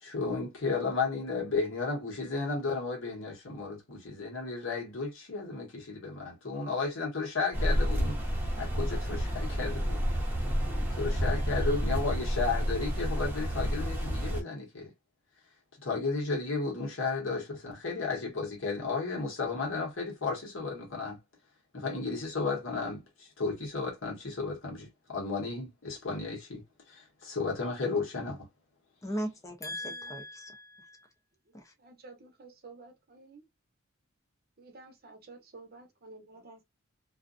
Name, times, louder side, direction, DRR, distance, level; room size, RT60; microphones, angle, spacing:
voice 1, 0.0-10.0 10.9-14.9 15.8-21.2 21.7-28.5, left 4 dB, 70° left, 1.1 m, -33 dB
sound 1, 7.5-14.4, equal, 10° right, 0.9 m, -30 dB
voice 2, 29.0-31.1 31.5-31.7, equal, 15° left, 0.6 m, -38 dB
voice 3, 29.8-30.1 31.8-33.4 34.6-36.6, right 3 dB, 50° right, 0.8 m, -51 dB
2.5 x 2.2 x 2.5 m
head